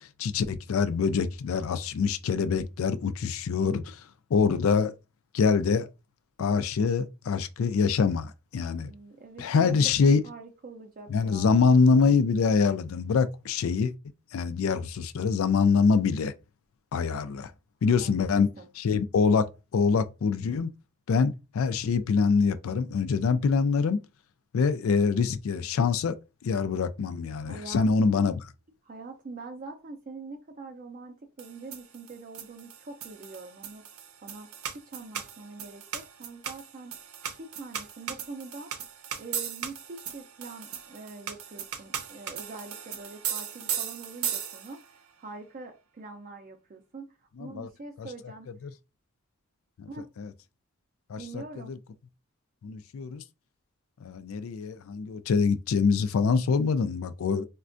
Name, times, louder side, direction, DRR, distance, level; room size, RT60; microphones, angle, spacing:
voice 1, 0.0-4.0 4.3-4.9 5.3-5.9 6.4-8.9 9.4-10.2 11.1-13.9 14.3-16.3 16.9-17.5 17.8-18.5 18.8-20.7 21.1-24.0 24.5-26.1 26.4-28.4 47.4-47.7 48.0-48.1 49.8-49.9 50.2-50.3 51.1-51.8 52.6-53.2 54.0-57.5, left 5 dB, 75° left, 0.4 m, -25 dB
voice 2, 8.8-9.7 10.0-11.6 17.9-18.7 27.5-28.2 28.8-33.9 34.2-37.0 37.4-38.7 39.2-48.5 49.9-50.1 51.2-51.7, right 3 dB, 40° right, 0.4 m, -44 dB
sound 1, 31.4-44.9, right 8 dB, 85° right, 0.6 m, -37 dB
4.2 x 2.2 x 2.5 m
head